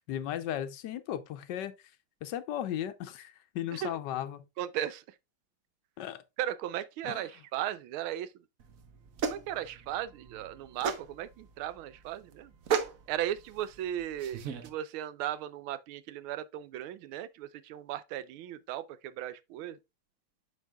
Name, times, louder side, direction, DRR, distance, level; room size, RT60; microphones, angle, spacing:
voice 1, 0.1-1.7 2.2-4.4 6.0-6.2 7.0-7.3, left 11 dB, 70° left, 1.2 m, -36 dB
voice 2, 4.6-5.0 6.4-8.3 9.3-12.5 13.1-19.8, right 12 dB, 90° right, 1.5 m, -36 dB
sound 1, 8.6-14.7, right 6 dB, 55° right, 1.0 m, -36 dB
8.2 x 6.2 x 2.3 m
omnidirectional pair, 2.2 m